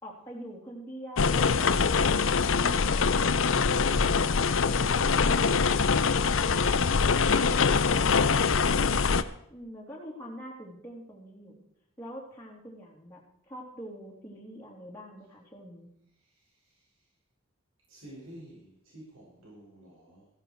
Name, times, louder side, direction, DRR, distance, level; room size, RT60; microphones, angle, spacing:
voice 1, 0.0-1.9 9.5-11.6 12.0-15.9, equal, 10° left, -4 dB, 2.9 m, -45 dB
sound 1, 1.2-9.2, left 5 dB, 75° left, 0.7 m, -24 dB
voice 2, 8.1-9.0 16.2-17.1 17.9-20.3, right 1 dB, 80° right, -5 dB, 6.3 m, -50 dB
15.0 x 11.5 x 4.6 m, 0.75 s
head